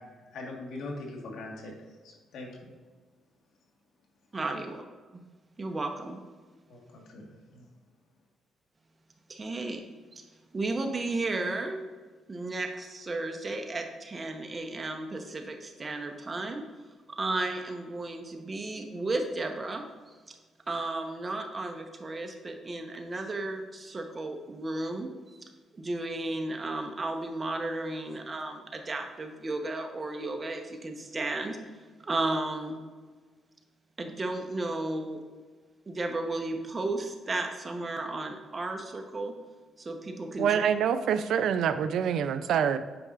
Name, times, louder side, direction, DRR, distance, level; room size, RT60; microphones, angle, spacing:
voice 1, 0.0-1.7 2.0-2.7 6.7-7.7, left 2 dB, 75° left, 0 dB, 1.5 m, -42 dB
voice 2, 4.3-4.8 5.1-5.2 5.6-6.2 9.3-9.8 10.1-10.2 10.5-11.8 12.3-16.6 17.2-19.8 20.3-20.4 20.7-25.4 25.7-31.6 32.0-32.8 34.0-35.2 35.9-39.3 39.8-40.6, right 2 dB, 30° right, 4 dB, 0.9 m, -34 dB
voice 3, 40.4-42.8, right 8 dB, 75° right, 11 dB, 0.4 m, -26 dB
8.7 x 5.4 x 2.5 m, 1.4 s
cardioid pair, 90°, 0 cm